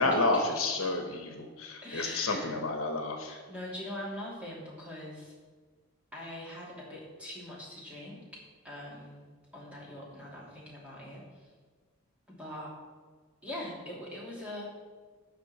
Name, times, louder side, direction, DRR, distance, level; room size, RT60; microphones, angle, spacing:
voice 1, 0.0-3.4, left 2 dB, 70° left, 4 dB, 1.3 m, -30 dB
voice 2, 1.8-2.6 3.3-5.3 6.1-9.3 9.5-11.5 12.3-12.7 13.4-14.7, left 1 dB, 5° right, -5 dB, 2.7 m, -42 dB
17.0 x 5.9 x 4.2 m, 1.5 s
head